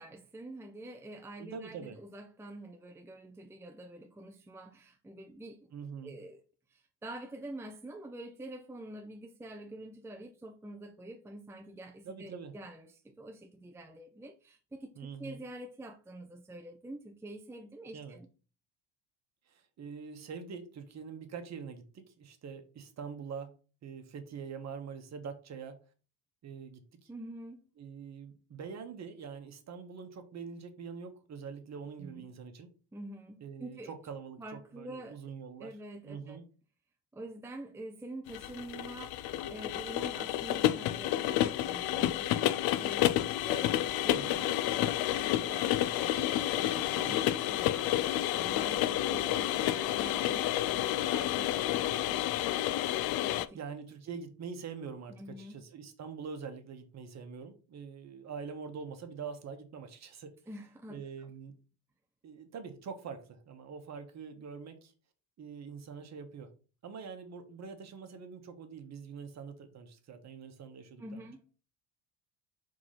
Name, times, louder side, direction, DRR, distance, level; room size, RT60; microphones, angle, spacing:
voice 1, 0.0-5.7 6.0-6.4 6.7-14.9 15.2-18.3 27.1-27.6 32.0-32.3 32.9-33.9 34.4-35.2 35.6-36.4 37.1-52.3 53.2-53.6 55.2-55.6 60.5-61.0 71.0-71.6, right 1 dB, 5° right, 0.6 m, -46 dB
voice 2, 1.4-2.0 5.7-6.1 12.0-12.5 15.0-15.4 17.9-18.2 19.5-23.5 23.8-25.8 26.4-27.1 27.8-32.7 33.4-35.7 36.0-36.4 44.1-44.4 46.7-47.2 48.6-49.1 53.5-60.3 60.9-61.5 62.2-64.9 65.4-66.5 66.8-71.3, right 6 dB, 40° right, 1.4 m, -44 dB
sound 1, 38.3-53.5, left 13 dB, 65° left, 0.6 m, -30 dB
4.7 x 3.8 x 5.7 m
cardioid pair, 110°, 40 cm